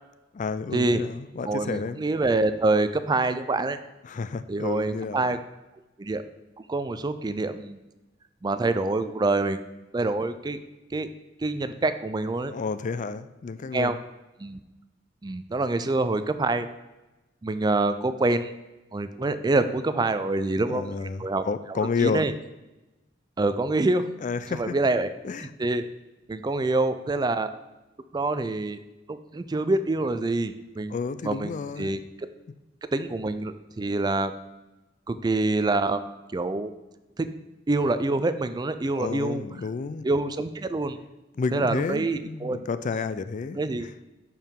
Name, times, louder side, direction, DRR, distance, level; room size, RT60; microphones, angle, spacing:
voice 1, 0.3-2.0 4.0-5.3 12.5-14.0 20.2-22.3 24.2-24.8 25.2-25.5 30.9-32.0 38.9-40.0 41.4-43.6, left 4 dB, 45° left, 13 dB, 0.4 m, -31 dB
voice 2, 1.5-3.8 4.5-5.4 6.0-6.2 6.7-7.8 8.4-9.6 9.9-10.6 10.9-11.1 11.4-12.5 13.7-14.0 14.4-14.6 15.2-16.7 17.4-18.5 18.9-21.4 21.7-22.3 23.4-24.1 24.5-25.1 25.4-25.9 26.3-27.5 28.1-28.8 29.1-30.9 31.2-32.0 32.9-34.3 35.1-36.0 36.3-36.7 37.2-37.3 37.7-39.4 40.0-41.0 41.5-42.6 43.5-43.9, right 2 dB, 25° right, 11 dB, 0.4 m, -26 dB
10.5 x 4.6 x 3.7 m, 1.0 s
head